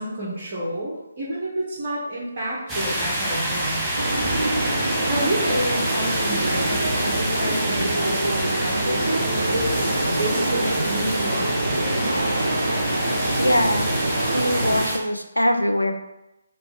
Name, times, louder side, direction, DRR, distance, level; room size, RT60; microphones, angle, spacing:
voice 1, 0.0-3.9 5.1-11.9, right 1 dB, 35° right, -7 dB, 0.9 m, -29 dB
sound 1, 2.7-15.0, right 1 dB, 5° right, 0.6 m, -27 dB
sound 2, 4.0-14.8, right 1 dB, 70° right, 0.5 m, -25 dB
voice 2, 13.4-13.9 14.3-15.9, equal, 85° left, 5 dB, 0.5 m, -22 dB
3.3 x 2.5 x 3.4 m, 0.92 s
figure-of-eight pair, 145°, 0 cm